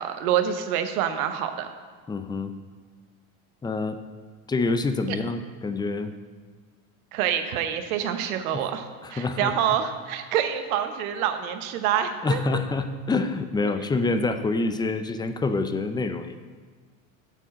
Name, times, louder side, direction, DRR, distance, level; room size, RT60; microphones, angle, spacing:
voice 1, 0.0-1.7 7.1-12.4, right 9 dB, 75° right, 8 dB, 1.0 m, -26 dB
voice 2, 2.1-2.5 3.6-4.0 4.5-6.1 8.5-8.6 9.0-9.5 12.2-16.5, left 3 dB, 10° left, 9 dB, 0.4 m, -26 dB
9.0 x 4.5 x 7.2 m, 1.5 s
hypercardioid pair, 95°, 43 cm